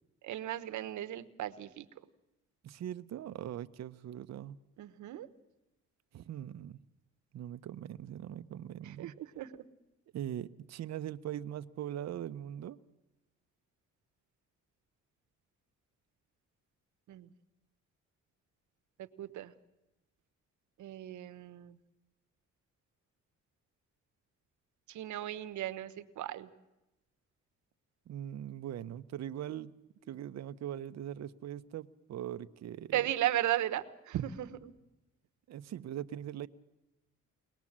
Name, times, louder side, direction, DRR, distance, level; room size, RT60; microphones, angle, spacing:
voice 1, 0.2-1.8 4.8-5.3 8.8-9.6 17.1-17.3 19.2-19.5 20.8-21.8 24.9-26.5 32.9-34.7, right 13 dB, 75° right, 11 dB, 1.1 m, -36 dB
voice 2, 2.6-4.6 6.1-6.8 7.3-9.2 10.1-12.8 28.1-29.7 30.1-33.1 35.5-36.5, right 11 dB, 60° right, 12 dB, 0.8 m, -41 dB
22.5 x 19.0 x 7.4 m, 0.97 s
cardioid pair, 90°, 30 cm